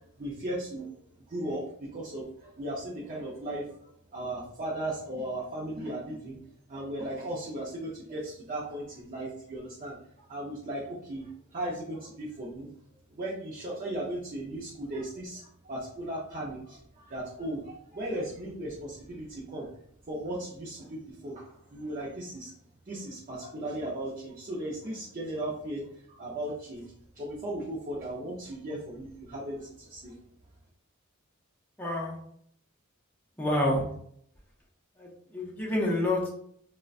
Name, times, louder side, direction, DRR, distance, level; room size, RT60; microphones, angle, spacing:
voice 1, 0.2-0.9 1.3-1.6 1.9-3.8 4.1-6.4 6.7-12.7 13.1-19.7 20.1-22.5 22.9-25.8 26.1-30.1, right 1 dB, 40° right, -5 dB, 0.6 m, -36 dB
voice 2, 31.8-32.1 33.4-33.8 35.0-36.3, left 1 dB, 10° left, -4 dB, 0.5 m, -28 dB
3.7 x 2.1 x 2.4 m, 0.67 s
head